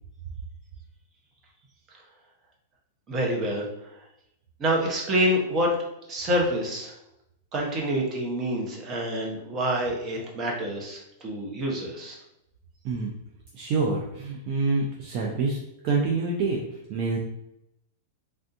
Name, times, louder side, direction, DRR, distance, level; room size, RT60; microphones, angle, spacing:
voice 1, 3.1-4.0 4.6-5.7 6.1-6.9 7.5-12.2, equal, 30° right, -1 dB, 0.9 m, -27 dB
voice 2, 13.5-15.6 15.8-16.6 16.9-17.2, right 4 dB, 45° right, -2 dB, 0.5 m, -26 dB
3.4 x 2.6 x 2.5 m, 0.84 s
hypercardioid pair, 130°, 0 cm